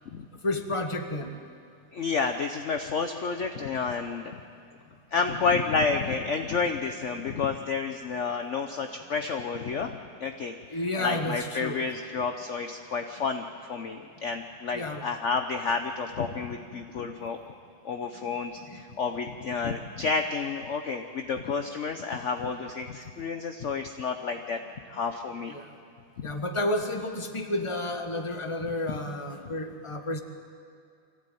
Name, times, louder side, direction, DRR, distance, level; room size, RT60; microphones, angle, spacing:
voice 1, 0.4-1.3 10.7-11.8 14.7-15.0 16.7-16.8 17.2-17.3 18.2-18.3 18.7-18.8 25.5-25.7 26.2-30.2, left 1 dB, 15° left, 5 dB, 1.3 m, -31 dB
voice 2, 1.9-4.4 5.1-17.4 17.8-24.6 24.9-25.5 26.2-26.3 28.9-29.0 29.4-29.5, left 5 dB, 55° left, 6 dB, 0.8 m, -30 dB
24.5 x 16.0 x 9.2 m, 2.4 s
omnidirectional pair, 2.3 m